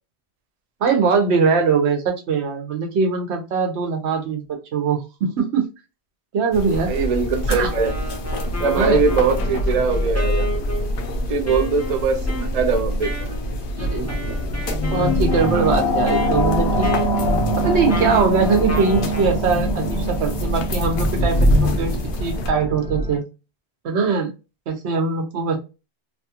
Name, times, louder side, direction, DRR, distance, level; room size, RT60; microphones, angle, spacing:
voice 1, 0.8-4.4 4.7-5.0 5.4-5.6 6.3-6.9 7.5-7.7 8.8-9.0 13.8-14.3 14.9-16.9 17.6-23.2 23.8-24.3 24.7-25.6, right 5 dB, 85° right, 1.1 m, -21 dB
sound 1, 6.5-22.5, left 1 dB, 60° left, 0.8 m, -27 dB
voice 2, 6.9-7.9 8.6-10.5 11.1-13.4, right 5 dB, 50° right, 0.5 m, -21 dB
Wind instrument woodwind instrument, 7.6-19.4, left 1 dB, 20° left, 0.5 m, -33 dB
sound 2, 13.6-23.2, equal, 90° left, 1.2 m, -22 dB
2.9 x 2.4 x 2.8 m
omnidirectional pair, 1.1 m